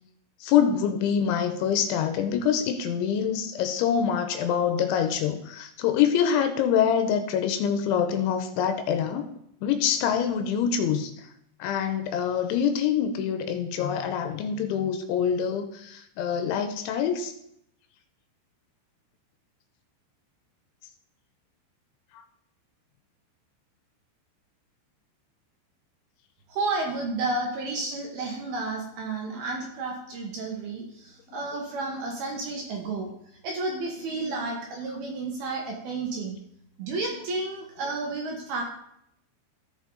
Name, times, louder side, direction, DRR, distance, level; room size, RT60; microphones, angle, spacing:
voice 1, 0.4-9.3 9.6-11.3 11.6-17.3 22.1-22.2 31.3-31.5 34.0-34.5, left 8 dB, 80° left, 7 dB, 3.0 m, -25 dB
voice 2, 26.5-33.1 33.4-36.4 36.8-38.6, right 3 dB, 65° right, 0 dB, 2.6 m, -31 dB
14.0 x 6.5 x 3.9 m, 0.75 s
omnidirectional pair, 5.6 m